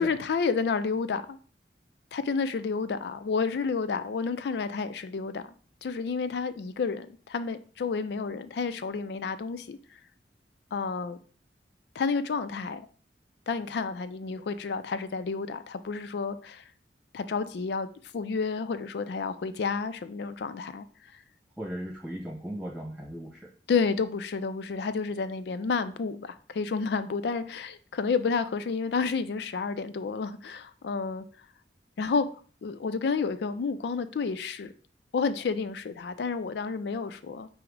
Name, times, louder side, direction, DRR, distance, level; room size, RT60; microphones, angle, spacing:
voice 1, 0.0-1.4 2.1-5.4 5.8-9.8 10.7-11.2 12.0-12.9 13.5-16.6 17.1-17.9 18.1-20.9 23.7-31.2 32.0-32.3 32.6-34.7 35.1-37.5, left 5 dB, 65° left, 0.3 m, -30 dB
voice 2, 21.6-23.5, equal, 5° right, 0.4 m, -37 dB
4.8 x 2.1 x 4.5 m
head